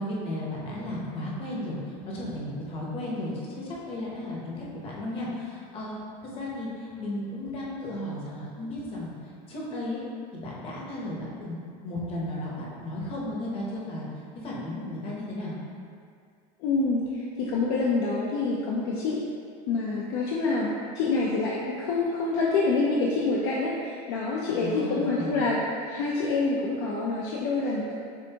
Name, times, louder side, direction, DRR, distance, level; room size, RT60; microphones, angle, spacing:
voice 1, 0.0-6.0 6.2-10.0 10.3-11.6 11.8-14.1 14.4-15.6 24.5-25.4, left 1 dB, 30° left, -5 dB, 0.9 m, -34 dB
voice 2, 16.6-19.3 19.7-27.9, left 3 dB, 55° left, -4 dB, 0.5 m, -27 dB
7.1 x 2.6 x 2.8 m, 2.2 s
cardioid pair, 175°, 20 cm